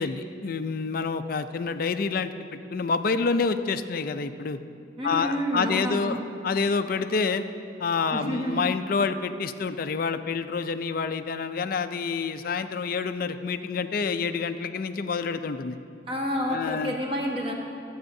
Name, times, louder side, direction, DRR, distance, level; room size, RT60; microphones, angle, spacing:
voice 1, 0.0-4.6 5.0-6.2 6.4-7.4 7.8-15.8 16.5-17.0, left 4 dB, 50° left, 10 dB, 0.4 m, -28 dB
voice 2, 5.0-6.2 8.1-8.6 16.1-17.5, equal, 30° right, 0 dB, 1.2 m, -29 dB
25.5 x 8.6 x 2.7 m, 2.6 s
head